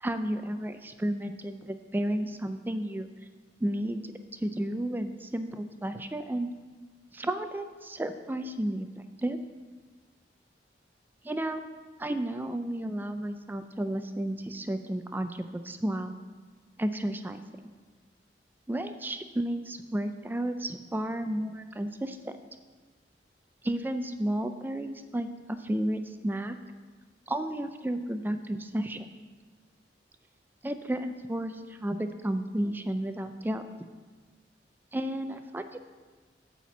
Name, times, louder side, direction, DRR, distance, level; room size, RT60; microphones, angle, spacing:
voice 1, 0.0-3.1 3.6-4.0 4.3-6.5 7.1-9.4 11.2-11.6 12.0-16.1 16.8-17.4 18.7-22.4 23.6-26.6 27.3-29.1 30.6-33.6 34.9-35.8, right 1 dB, 10° right, 8 dB, 0.3 m, -32 dB
9.1 x 4.3 x 7.0 m, 1.4 s
head